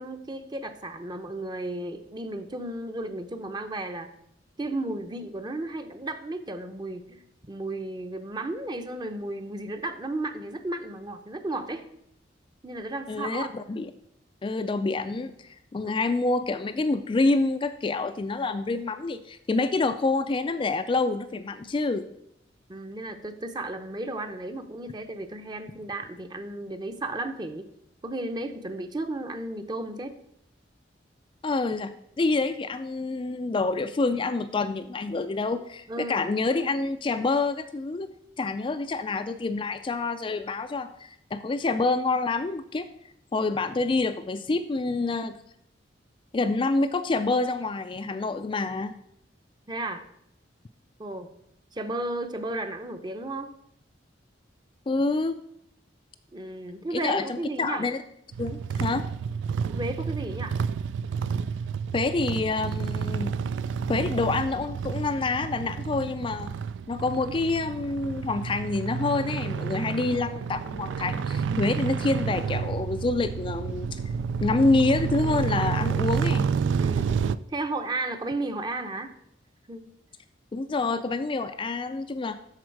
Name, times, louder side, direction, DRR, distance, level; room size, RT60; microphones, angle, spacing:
voice 1, 0.0-4.1 4.6-11.9 12.6-13.5 15.8-15.9 22.7-27.7 28.0-30.2 35.9-36.3 49.7-50.1 51.0-51.3 51.7-53.5 56.3-57.9 59.7-60.6 76.8-77.1 77.5-79.1 79.7-79.9, right 2 dB, 25° right, 7 dB, 0.7 m, -34 dB
voice 2, 13.1-13.9 14.4-22.1 31.4-31.9 32.2-38.1 38.4-42.9 43.3-45.3 46.3-48.9 54.9-55.3 56.9-58.0 58.4-59.0 61.9-63.4 63.9-66.5 66.9-74.0 74.4-76.5 80.5-82.4, left 3 dB, 25° left, 8 dB, 0.3 m, -27 dB
sound 1, 58.3-77.4, right 6 dB, 75° right, 0.3 m, -30 dB
12.5 x 4.2 x 4.6 m, 0.74 s
head